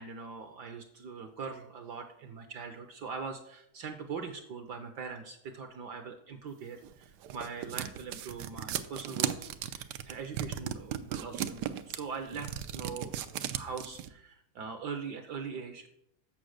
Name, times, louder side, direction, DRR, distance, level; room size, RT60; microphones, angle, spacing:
voice 1, 0.0-9.4 9.7-13.1 13.5-15.9, right 5 dB, 65° right, 6 dB, 1.1 m, -41 dB
sound 1, 6.8-14.1, right 10 dB, 85° right, 0.9 m, -36 dB
7.5 x 6.4 x 6.4 m, 0.76 s
omnidirectional pair, 2.4 m